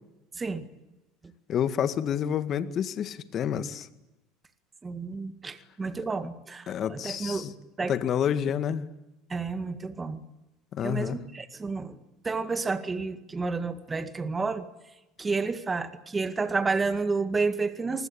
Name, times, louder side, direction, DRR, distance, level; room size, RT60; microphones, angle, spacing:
voice 1, 1.5-3.9 6.0-6.1 6.7-7.5 7.9-8.9 10.7-11.2, left 9 dB, 40° left, 12 dB, 1.9 m, -29 dB
voice 2, 4.8-7.5 7.8-7.9 9.3-10.2 10.8-12.0 12.2-14.7 15.2-18.1, right 4 dB, 20° right, 10 dB, 2.0 m, -30 dB
27.5 x 20.5 x 8.9 m, 0.97 s
supercardioid pair, 120°, 0 cm